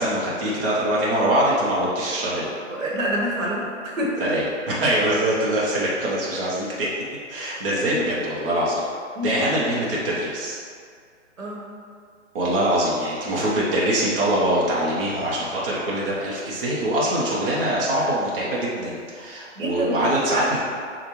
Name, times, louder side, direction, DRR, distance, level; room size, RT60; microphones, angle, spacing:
voice 1, 0.0-2.5 4.2-6.9 7.3-8.8 9.2-10.6 12.3-20.6, right 1 dB, 45° right, -6 dB, 0.9 m, -23 dB
voice 2, 2.7-4.2 7.7-8.0 9.1-9.7 11.4-11.7 19.5-20.4, equal, 90° right, -4 dB, 1.4 m, -27 dB
6.5 x 2.5 x 2.9 m, 2.1 s
hypercardioid pair, 160°, 38 cm